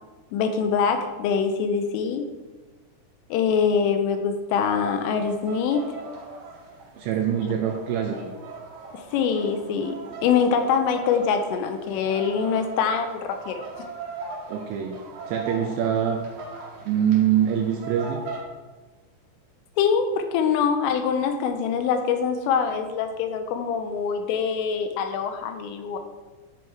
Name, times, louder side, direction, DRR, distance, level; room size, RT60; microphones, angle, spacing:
voice 1, 0.3-2.3 3.3-6.0 8.9-13.7 19.8-26.0, left 6 dB, 85° left, 7 dB, 3.1 m, -24 dB
sound 1, 4.5-18.4, right 4 dB, 55° right, 2.8 m, -39 dB
voice 2, 6.9-8.2 14.5-15.0 15.3-16.2 16.8-18.2, right 9 dB, 80° right, 2 dB, 2.7 m, -24 dB
13.0 x 4.7 x 4.7 m, 1.3 s
omnidirectional pair, 6.0 m